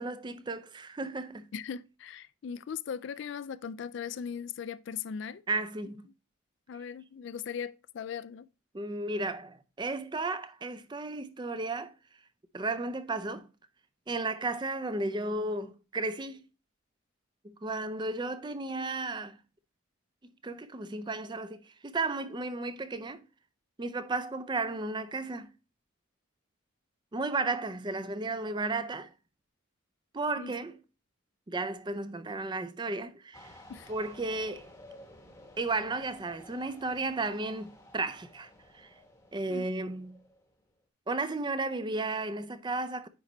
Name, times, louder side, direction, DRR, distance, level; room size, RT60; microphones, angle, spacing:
voice 1, 0.0-1.5 5.5-6.1 8.7-11.9 12.5-13.5 14.1-16.4 17.6-19.4 20.4-23.2 23.8-25.5 27.1-29.1 30.1-30.8 31.5-33.5 33.9-34.7 35.6-38.9 39.3-40.2 41.1-43.1, right 3 dB, 20° right, 0.4 m, -34 dB
voice 2, 1.5-5.4 6.7-8.5 30.4-30.5 33.7-33.9 39.5-39.7, left 7 dB, 55° left, 0.3 m, -39 dB
sound 1, 33.3-40.7, left 1 dB, 15° left, 0.9 m, -54 dB
9.3 x 3.9 x 3.0 m
head